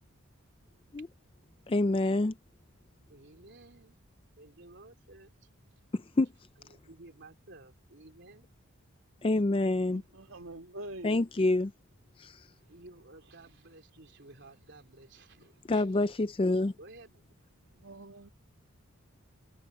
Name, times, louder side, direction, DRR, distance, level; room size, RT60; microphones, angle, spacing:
voice 1, 1.7-2.3 5.9-6.3 9.2-10.0 11.0-11.7 12.2-12.4 15.7-16.7, left 2 dB, 25° left, 0.4 m, -27 dB
voice 2, 3.1-4.0 4.4-5.5 6.6-8.5 12.6-16.1 16.8-17.4, right 2 dB, 55° right, 3.7 m, -54 dB
voice 3, 9.9-11.2 17.6-18.3, right 1 dB, 70° right, 3.1 m, -45 dB
head